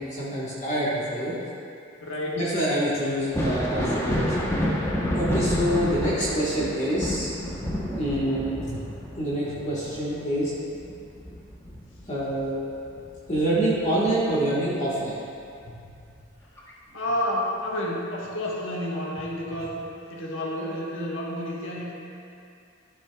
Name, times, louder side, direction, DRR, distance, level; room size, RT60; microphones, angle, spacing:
voice 1, 0.0-1.3 2.3-4.3 5.1-7.3 7.9-8.8 9.2-10.5 12.1-12.6 13.3-15.2, right 1 dB, 35° left, -8 dB, 1.4 m, -26 dB
voice 2, 2.0-2.4 5.1-5.5 16.9-19.7 20.1-21.9, left 1 dB, 70° left, -4 dB, 1.4 m, -30 dB
Thunder, 3.2-12.5 12.9-14.1 15.7-15.8 16.6-16.7, equal, 15° left, 0.9 m, -29 dB
12.0 x 7.1 x 2.3 m, 2.5 s
head